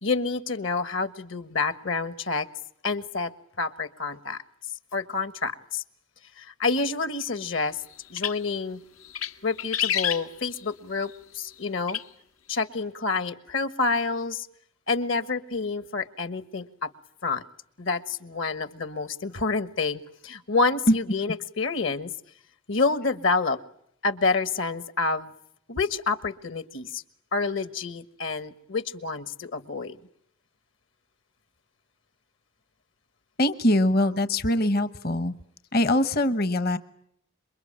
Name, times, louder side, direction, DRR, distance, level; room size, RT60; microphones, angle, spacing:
voice 1, 0.0-2.5 2.8-3.3 3.6-4.4 4.9-5.8 6.4-7.8 8.1-8.8 9.4-12.0 12.5-14.5 14.9-16.9 17.2-17.4 17.8-22.1 22.7-23.6 24.0-25.3 25.7-27.0 27.3-30.0, left 4 dB, 65° left, 13 dB, 1.4 m, -28 dB
sound 1, 8.0-8.6 9.0-9.3 9.6-10.7 11.9-12.0, left 10 dB, 90° left, 1.4 m, -28 dB
voice 2, 33.4-35.3 35.7-36.8, left 1 dB, 45° left, 13 dB, 1.0 m, -23 dB
27.5 x 23.0 x 8.7 m, 0.71 s
head